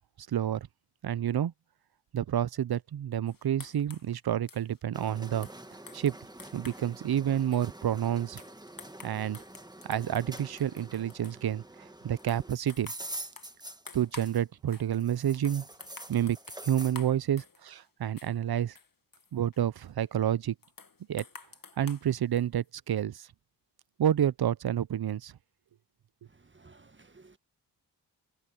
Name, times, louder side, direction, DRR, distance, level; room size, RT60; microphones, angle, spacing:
voice 1, 0.3-0.7 1.0-1.5 2.1-5.5 5.9-6.1 6.5-8.4 9.0-9.4 9.8-12.9 13.9-15.6 16.1-16.4 16.6-18.8 19.3-20.5 21.1-21.2 21.8-23.3 24.0-25.4, right 10 dB, 60° right, 0.7 m, -29 dB
sound 1, 3.3-6.9 7.4-11.5 12.0-14.4 14.7-14.9 15.3-17.9 18.2-20.1 20.6-22.7, left 4 dB, 50° left, 2.1 m, -51 dB
sound 2, 4.9-14.6 14.9-17.0, right 1 dB, 10° right, 1.4 m, -46 dB
voice 2, 26.2-27.4, right 3 dB, 25° right, 1.7 m, -57 dB
cardioid pair, 50°, 43 cm